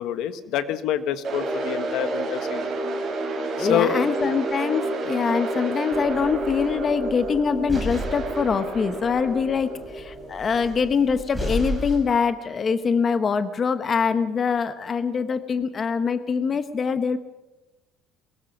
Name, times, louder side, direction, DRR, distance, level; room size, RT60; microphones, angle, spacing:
voice 1, 0.0-2.7 3.6-3.9, left 11 dB, 70° left, 11 dB, 1.6 m, -27 dB
sound 1, 1.2-11.3, right 2 dB, 35° right, 8.0 m, -30 dB
voice 2, 3.6-17.2, left 6 dB, 30° left, 10 dB, 0.9 m, -24 dB
sound 2, 5.9-12.0, left 1 dB, 5° left, 5.5 m, -34 dB
23.0 x 21.5 x 6.0 m, 0.98 s
cardioid pair, 160°, 0 cm